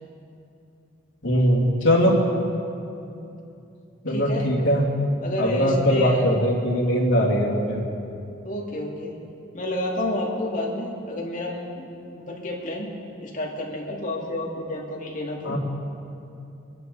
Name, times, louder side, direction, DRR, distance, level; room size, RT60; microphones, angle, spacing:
voice 1, 1.2-2.2 4.0-4.9 5.4-7.9 15.4-15.6, equal, 80° left, -3 dB, 2.7 m, -21 dB
voice 2, 4.1-4.5 5.2-6.2 8.4-9.2 9.5-12.9 13.2-15.6, left 1 dB, 40° left, -2 dB, 2.4 m, -30 dB
23.5 x 11.0 x 4.1 m, 2.7 s
head